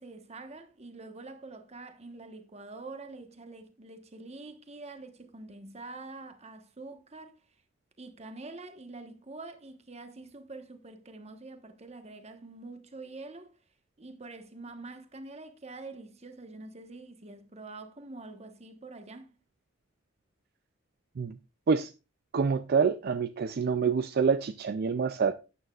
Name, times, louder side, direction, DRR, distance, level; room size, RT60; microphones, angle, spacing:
voice 1, 0.0-7.3 8.0-13.5 14.0-19.3, right 3 dB, 35° right, 1.2 m, -45 dB
voice 2, 22.3-25.4, right 5 dB, 50° right, 0.4 m, -27 dB
12.5 x 8.8 x 2.4 m
head